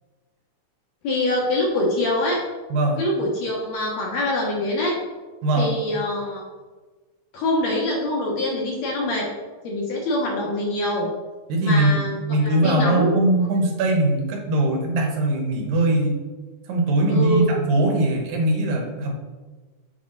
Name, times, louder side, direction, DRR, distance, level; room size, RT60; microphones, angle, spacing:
voice 1, 1.0-2.4 3.0-5.0 5.6-6.4 7.3-9.3 9.6-11.1 11.6-13.1 17.1-17.5, left 1 dB, 65° left, -2 dB, 2.0 m, -24 dB
voice 2, 2.7-3.0 5.4-5.7 11.5-11.9 12.3-16.2 16.7-19.1, right 1 dB, 90° right, 1 dB, 2.9 m, -21 dB
7.2 x 5.7 x 3.9 m, 1.3 s
omnidirectional pair, 3.9 m